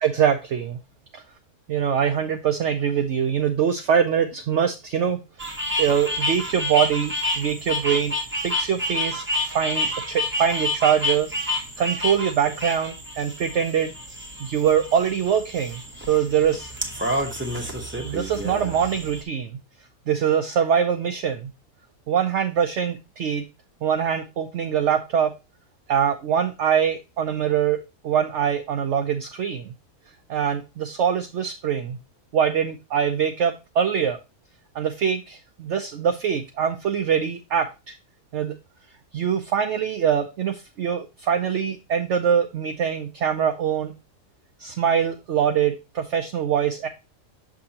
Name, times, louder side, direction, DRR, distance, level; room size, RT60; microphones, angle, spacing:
voice 1, 0.0-0.8 1.7-5.2 5.8-8.1 8.4-11.3 11.8-13.9 14.4-15.8 16.1-16.7 18.0-19.6 20.1-21.5 22.1-23.4 23.8-25.3 25.9-27.8 28.0-29.7 30.3-32.0 32.3-34.2 34.7-38.0 38.3-38.5 39.1-43.9 44.6-46.9, right 8 dB, 65° right, 5 dB, 0.8 m, -23 dB
sound 1, 5.4-19.2, left 1 dB, 10° right, 0.7 m, -29 dB
6.1 x 6.1 x 2.8 m, 0.26 s
omnidirectional pair, 1.5 m